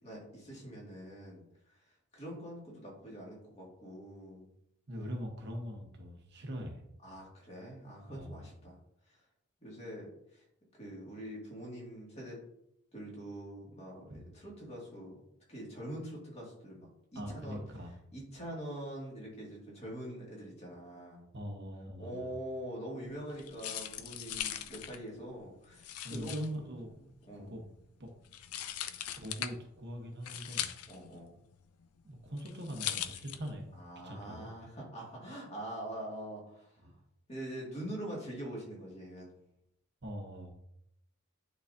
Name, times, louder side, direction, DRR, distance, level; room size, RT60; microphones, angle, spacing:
voice 1, 0.0-1.8 2.1-4.5 7.0-8.8 9.1-9.2 9.6-10.4 10.8-12.4 12.9-15.2 15.5-17.6 18.1-21.2 22.0-26.5 27.0-27.5 30.9-31.3 33.8-37.0 37.3-39.4, right 1 dB, 30° left, -3 dB, 2.0 m, -44 dB
voice 2, 4.9-6.8 8.1-8.5 14.1-14.3 17.1-17.9 21.3-22.3 26.0-26.9 27.3-27.6 28.0-28.1 29.2-30.7 32.0-33.7 34.0-34.5 36.8-36.9 40.0-40.5, equal, 50° right, 2 dB, 1.0 m, -42 dB
sound 1, 23.1-33.8, left 11 dB, 75° left, 0.5 m, -41 dB
9.4 x 3.9 x 2.6 m, 0.76 s
head